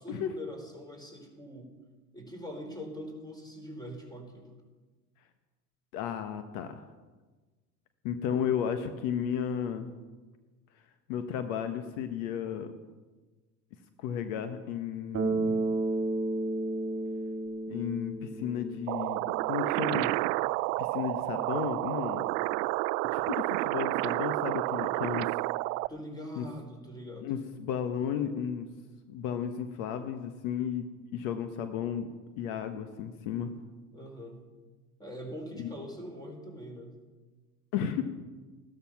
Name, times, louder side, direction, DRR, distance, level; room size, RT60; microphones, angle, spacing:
voice 1, 0.0-1.7 2.1-4.5 25.9-27.3 33.9-34.4 35.0-37.0, equal, 10° left, 3 dB, 4.3 m, -43 dB
voice 2, 5.9-6.8 8.0-9.9 11.1-12.7 14.0-15.6 17.7-20.1 20.8-22.2 23.1-25.3 26.4-26.5 27.2-28.7 29.1-30.9 31.1-32.1 32.4-33.5 35.6-35.7 37.7-38.0, left 8 dB, 65° left, 8 dB, 1.2 m, -33 dB
Bass guitar, 15.1-19.4, right 2 dB, 30° right, 2.3 m, -32 dB
sound 1, 18.9-25.9, right 21 dB, 60° right, 0.5 m, -30 dB
14.5 x 12.5 x 5.9 m, 1.3 s
hypercardioid pair, 85°, 45 cm